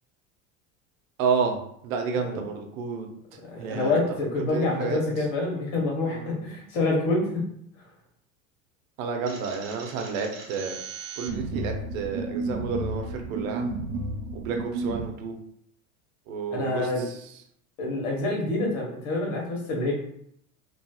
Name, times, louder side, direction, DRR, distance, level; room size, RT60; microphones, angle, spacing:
voice 1, 1.2-3.1 3.6-4.0 4.5-5.0 6.1-6.4 9.0-10.8 11.2-13.7 14.3-15.3 16.3-17.1, right 5 dB, 70° right, 4 dB, 0.8 m, -30 dB
voice 2, 3.4-7.5 16.5-17.1 17.8-19.9, left 2 dB, 70° left, -1 dB, 1.4 m, -27 dB
sound 1, 9.3-15.0, right 2 dB, 45° right, 1.2 m, -33 dB
3.0 x 2.8 x 2.3 m, 0.70 s
hypercardioid pair, 100°, 42 cm